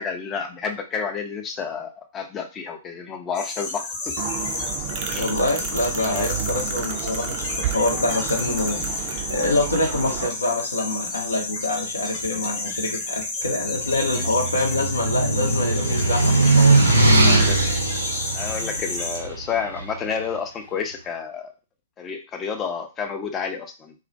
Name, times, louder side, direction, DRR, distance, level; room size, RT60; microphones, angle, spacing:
voice 1, 0.0-4.2 5.1-5.3 6.0-6.3 14.2-14.4 17.1-17.7 18.3-21.5 22.0-23.9, left 6 dB, 20° left, 5 dB, 0.4 m, -30 dB
sound 1, 3.3-19.2, left 3 dB, 45° left, 0.9 m, -31 dB
sound 2, 4.2-10.3, right 9 dB, 40° right, 0.4 m, -31 dB
voice 2, 5.2-16.8, left 2 dB, 75° left, 2 dB, 0.6 m, -25 dB
sound 3, 13.7-19.9, right 2 dB, 85° right, 0.6 m, -20 dB
2.2 x 2.1 x 2.6 m, 0.30 s
figure-of-eight pair, 110°, 0 cm